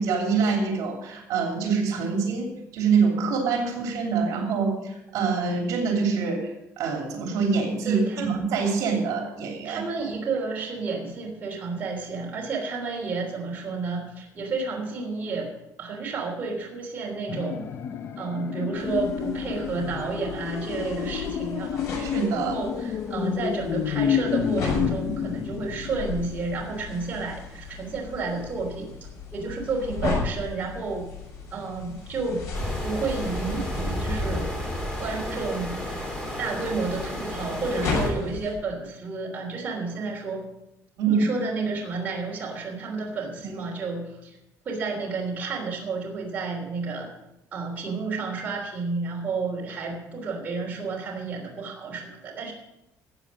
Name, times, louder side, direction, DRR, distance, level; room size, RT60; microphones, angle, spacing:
voice 1, 0.0-9.8 22.0-22.6 41.0-41.2 43.4-43.5, right 5 dB, 65° right, 1 dB, 3.0 m, -25 dB
voice 2, 7.8-8.3 9.6-15.5 15.8-17.7 18.2-21.8 22.4-28.9 29.3-31.1 31.5-32.4 32.8-34.5 35.0-36.0 36.4-40.4 41.1-44.4 44.6-47.1 47.5-52.5, right 4 dB, 25° right, -2 dB, 3.4 m, -31 dB
sound 1, 17.3-26.4 26.7-26.8, left 8 dB, 40° left, 0.5 m, -30 dB
sound 2, 18.7-38.5, left 3 dB, 55° left, 6.5 m, -36 dB
sound 3, 32.5-38.1, equal, 10° left, 2.9 m, -32 dB
15.0 x 8.3 x 6.3 m, 0.88 s
cardioid pair, 175°, 6 cm